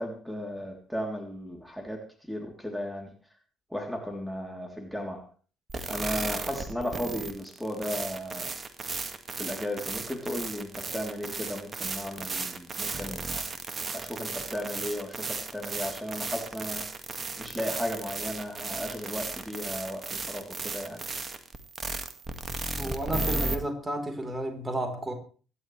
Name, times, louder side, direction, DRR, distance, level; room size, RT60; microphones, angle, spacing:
voice 1, 0.0-3.1 3.7-5.2 5.9-8.5 9.4-13.4 13.9-16.8 17.4-21.1, equal, ahead, 2 dB, 3.5 m, -35 dB
sound 1, 5.7-23.6, right 3 dB, 35° right, 2.1 m, -35 dB
voice 2, 22.8-25.1, right 1 dB, 20° right, 5 dB, 4.3 m, -32 dB
25.0 x 11.5 x 3.4 m, 0.40 s
hypercardioid pair, 50°, 0 cm